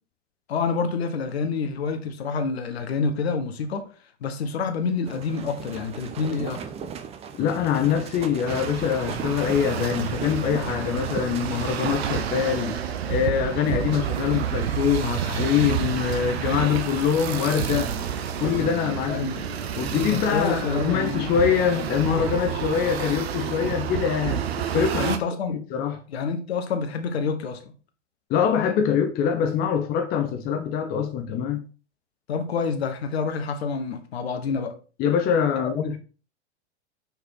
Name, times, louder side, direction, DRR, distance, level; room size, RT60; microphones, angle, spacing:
voice 1, 0.5-3.9 4.2-6.6 13.2-13.3 19.1-19.5 20.1-21.3 24.9-25.6 26.1-27.7 32.3-34.7 35.8-36.0, left 5 dB, 65° left, 1.2 m, -28 dB
sound 1, 5.1-12.2, right 7 dB, 20° right, 0.5 m, -37 dB
voice 2, 7.4-12.8 13.1-17.9 18.4-19.2 19.8-25.1 25.5-26.0 28.3-31.6 35.0-36.0, left 8 dB, 25° left, 0.7 m, -24 dB
sound 2, 8.5-25.2, right 10 dB, 60° right, 0.8 m, -30 dB
sound 3, 9.0-22.9, right 3 dB, 85° right, 1.4 m, -39 dB
5.6 x 4.0 x 4.5 m
figure-of-eight pair, 100°, 35 cm